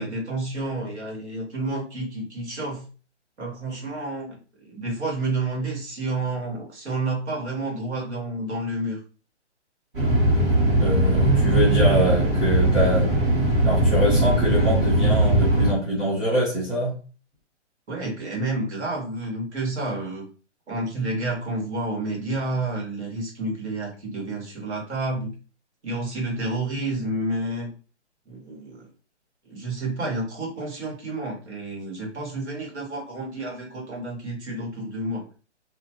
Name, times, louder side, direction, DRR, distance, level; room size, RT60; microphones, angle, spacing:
voice 1, 0.0-2.8 3.4-9.0 17.9-20.3 20.7-25.3 25.8-27.7 28.3-28.9 29.5-35.2, right 2 dB, 65° right, -2 dB, 1.5 m, -30 dB
sound 1, 9.9-15.7, right 1 dB, 45° right, 1.4 m, -19 dB
voice 2, 10.7-13.1 13.6-17.0, equal, ahead, -12 dB, 0.8 m, -24 dB
2.6 x 2.2 x 2.9 m, 0.37 s
hypercardioid pair, 160°, 36 cm